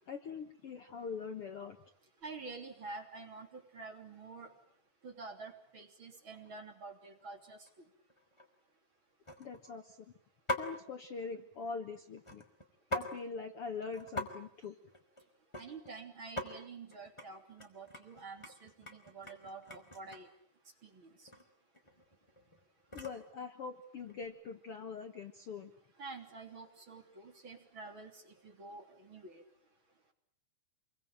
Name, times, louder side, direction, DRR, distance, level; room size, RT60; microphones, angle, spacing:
voice 1, 0.1-1.8 9.4-10.1 10.5-12.4 12.9-14.8 22.9-25.7, left 5 dB, 55° left, 6 dB, 1.9 m, -43 dB
voice 2, 2.2-4.5 5.0-7.6 15.6-20.3 20.8-21.3 26.0-29.4, right 3 dB, 35° right, 3 dB, 3.8 m, -48 dB
sound 1, 6.3-6.6 7.0-7.3 7.7-7.8 8.1-8.5 9.3-9.8 10.5-10.8 12.2-13.1 13.5-13.6 13.8-14.3 14.5-15.9 16.2-16.5 16.9-17.3 17.6-20.4 21.3-21.4 21.7-23.3 23.9-24.3, left 1 dB, 10° left, 2.9 m, -42 dB
27.5 x 23.0 x 8.9 m, 0.63 s
omnidirectional pair, 4.0 m